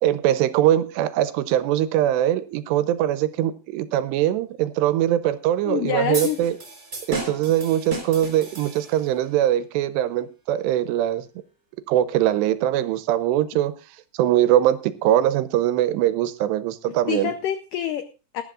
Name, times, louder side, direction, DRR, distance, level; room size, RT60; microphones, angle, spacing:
voice 1, 0.0-6.6 7.1-11.3 11.9-13.8 14.1-17.3, right 12 dB, 85° right, 13 dB, 3.0 m, -22 dB
voice 2, 5.7-6.4 16.9-18.4, left 10 dB, 80° left, 10 dB, 1.9 m, -27 dB
sound 1, 6.1-9.2, right 2 dB, 15° right, 3.9 m, -34 dB
21.0 x 11.0 x 2.5 m, 0.30 s
omnidirectional pair, 4.8 m